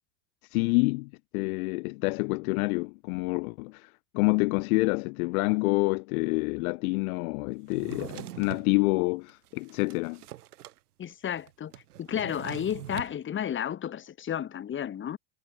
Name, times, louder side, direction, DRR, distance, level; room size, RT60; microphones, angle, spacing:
voice 1, 0.5-10.2, left 28 dB, 70° left, 0.5 m, -27 dB
Drawer open or close, 7.7-8.7 9.3-10.8 11.0-11.1 11.4-13.2, right 14 dB, 90° right, 7.0 m, -43 dB
voice 2, 11.0-11.7 12.0-15.2, left 9 dB, 25° left, 1.3 m, -32 dB
supercardioid pair, 110°, 45 cm